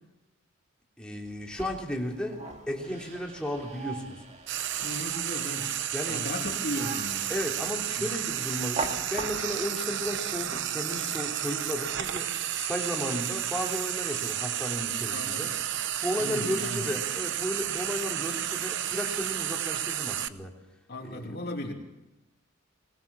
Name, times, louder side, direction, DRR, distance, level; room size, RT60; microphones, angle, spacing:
voice 1, 1.0-4.2 5.9-6.2 7.3-12.3 12.6-15.5 16.0-20.5 21.0-21.4, equal, 5° left, -1 dB, 3.5 m, -34 dB
sound 1, 1.2-9.7, right 3 dB, 35° right, 2.1 m, -41 dB
Frying (food), 4.5-20.3, right 11 dB, 60° right, 0.9 m, -32 dB
voice 2, 4.8-5.7 6.1-7.3 8.0-8.1 15.1-15.5 16.2-16.9 20.9-21.7, left 1 dB, 50° left, 0 dB, 2.9 m, -36 dB
21.0 x 20.0 x 7.2 m, 0.97 s
head